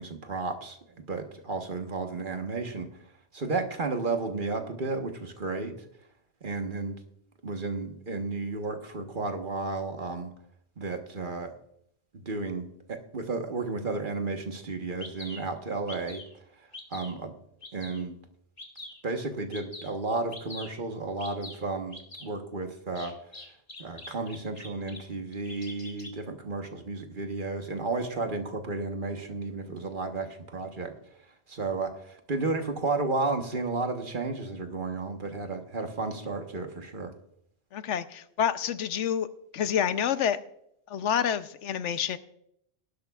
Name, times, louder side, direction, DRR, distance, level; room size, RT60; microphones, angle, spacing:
voice 1, 0.0-2.9 3.3-5.7 6.4-7.0 7.4-10.3 10.8-11.5 12.2-16.2 16.9-17.3 17.7-18.2 19.0-23.2 23.8-30.9 31.5-37.1, right 3 dB, 45° right, 5 dB, 1.3 m, -33 dB
Bird vocalization bird call bird song, 14.5-14.6 15.0-15.4 15.9-16.3 16.7-17.1 17.6-18.0 18.6-19.0 19.5-19.9 20.3-20.7 21.2-21.6 21.9-22.3 22.9-25.0 25.3-26.1, left 2 dB, 30° left, 1.8 m, -43 dB
voice 2, 37.7-39.3 39.5-40.4 40.9-42.2, left 8 dB, 80° left, 12 dB, 1.0 m, -28 dB
18.5 x 11.0 x 2.4 m, 0.72 s
omnidirectional pair, 1.2 m